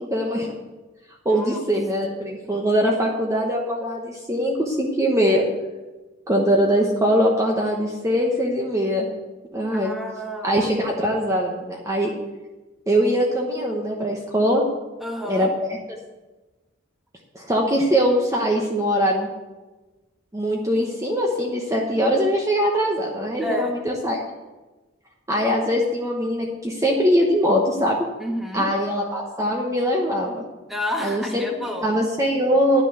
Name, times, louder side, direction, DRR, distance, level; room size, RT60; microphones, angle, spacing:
voice 1, 0.1-0.5 1.2-5.4 6.3-9.1 9.5-9.9 10.4-12.1 12.9-14.6 15.3-15.8 17.3-19.3 20.3-24.2 25.3-28.0 28.5-30.4 31.0-31.4 31.8-32.8, equal, 15° right, -1 dB, 1.0 m, -22 dB
voice 2, 1.3-1.6 9.7-10.6 15.0-15.5 23.4-23.7 28.2-28.7 30.7-31.9, left 1 dB, ahead, 2 dB, 1.3 m, -30 dB
11.0 x 6.1 x 7.8 m, 1.2 s
head